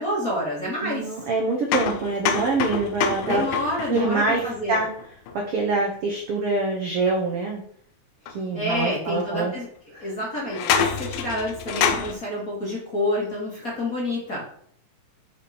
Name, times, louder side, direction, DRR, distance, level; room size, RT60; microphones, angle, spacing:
voice 1, 0.0-1.1 3.2-4.8 8.5-14.4, left 1 dB, 30° left, -5 dB, 2.0 m, -28 dB
voice 2, 0.8-3.4 3.9-4.9 5.3-7.6 8.3-9.5 9.9-10.1, right 3 dB, 75° right, -1 dB, 1.3 m, -25 dB
sound 1, 1.7-5.5 8.3-8.4 9.2-9.3 10.4-12.1, left 7 dB, 75° left, 2.5 m, -27 dB
6.9 x 5.1 x 4.4 m, 0.64 s
omnidirectional pair, 4.2 m